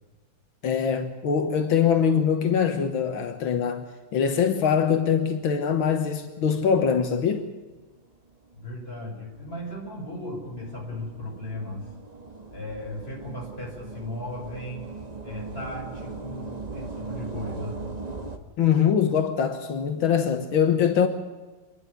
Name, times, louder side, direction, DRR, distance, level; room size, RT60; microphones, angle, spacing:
voice 1, 0.6-3.9 4.1-7.4 18.6-21.1, left 7 dB, 85° left, 2.1 m, -23 dB
sound 1, 8.3-18.4, right 3 dB, 20° right, 1.5 m, -40 dB
voice 2, 8.5-11.9 12.5-15.0 15.2-17.8, left 1 dB, 30° left, 5.8 m, -36 dB
27.5 x 11.0 x 9.7 m
omnidirectional pair, 2.1 m